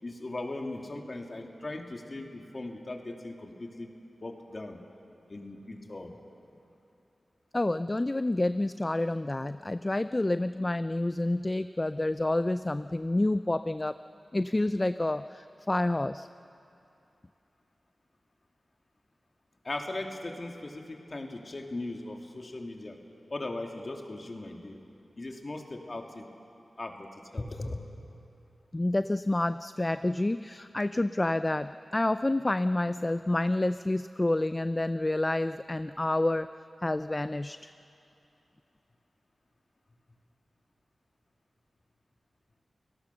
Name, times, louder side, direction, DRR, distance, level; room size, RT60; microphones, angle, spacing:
voice 1, 0.0-3.9 4.2-4.8 5.3-6.2 19.6-23.0 23.3-24.8 25.2-26.3 26.8-27.9, left 2 dB, 45° left, 3 dB, 2.5 m, -38 dB
voice 2, 7.5-14.0 14.3-16.3 28.7-36.5 36.8-37.7, left 2 dB, 30° left, 12 dB, 0.4 m, -28 dB
30.0 x 17.5 x 6.9 m, 2.8 s
cardioid pair, 45°, 0 cm